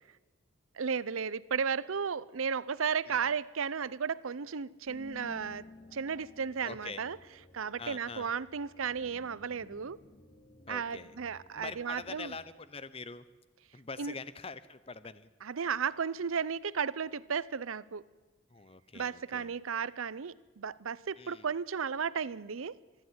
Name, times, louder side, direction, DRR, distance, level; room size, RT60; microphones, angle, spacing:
voice 1, 0.7-7.2 7.5-10.0 10.7-12.3 14.0-14.1 15.4-18.0 18.9-22.8, right 6 dB, 85° right, 0.6 m, -34 dB
sound 1, 4.9-12.3, left 2 dB, 45° left, 3.6 m, -55 dB
voice 2, 6.6-7.0 7.8-8.3 10.7-11.1 11.6-13.2 13.7-15.3 18.5-19.5 21.2-21.5, left 4 dB, 30° left, 0.7 m, -44 dB
25.5 x 11.0 x 9.6 m
head